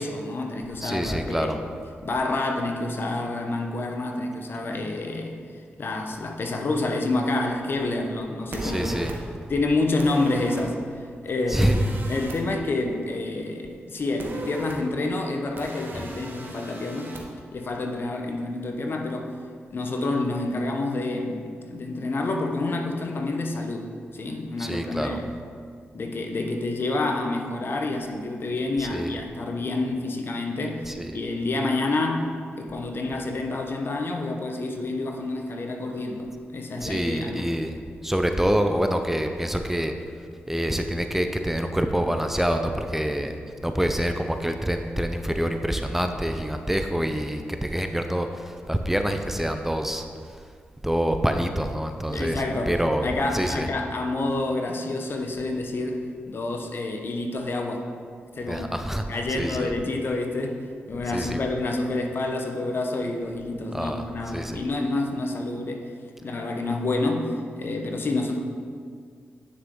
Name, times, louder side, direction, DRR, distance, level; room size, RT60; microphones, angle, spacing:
voice 1, 0.0-1.5 2.0-5.4 5.8-9.0 9.5-10.8 11.2-11.7 12.1-17.2 17.5-19.3 19.7-25.3 25.9-37.5 52.1-57.9 58.3-58.7 59.1-65.9 66.2-68.4, left 2 dB, 55° left, 3 dB, 1.0 m, -28 dB
voice 2, 0.8-1.6 8.6-9.1 11.5-11.8 16.0-16.2 24.6-25.2 28.8-29.1 30.9-31.1 36.8-37.7 38.0-39.9 40.5-43.3 43.6-50.1 50.8-53.1 53.3-53.7 58.5-59.0 59.3-59.7 61.1-61.5 63.7-64.6, equal, 5° right, 6 dB, 0.6 m, -26 dB
sound 1, 8.5-9.2 10.0-10.6 11.6-12.4 14.2-14.8 15.6-17.2, right 2 dB, 55° right, 1.4 m, -37 dB
9.7 x 6.1 x 3.8 m, 2.1 s
cardioid pair, 55°, 4 cm